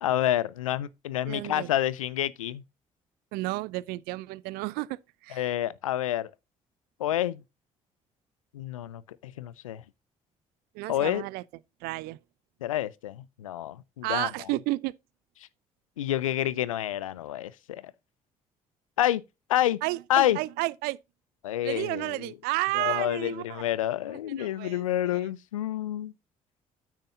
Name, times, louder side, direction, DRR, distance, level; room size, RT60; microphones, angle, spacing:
voice 1, 0.0-2.6 5.3-6.3 7.0-7.4 8.5-9.8 10.9-11.2 12.6-14.3 16.0-17.9 19.0-19.2 19.5-19.8 20.1-20.4 21.4-22.3 22.7-26.1, left 12 dB, 90° left, 0.4 m, -28 dB
voice 2, 1.2-1.7 3.3-5.0 5.2-5.5 10.7-11.4 11.8-12.2 14.0-14.9 19.8-21.0 21.6-23.6 24.4-24.8 25.1-25.2, right 20 dB, 70° right, 0.5 m, -31 dB
9.2 x 8.9 x 2.6 m
hypercardioid pair, 45°, 17 cm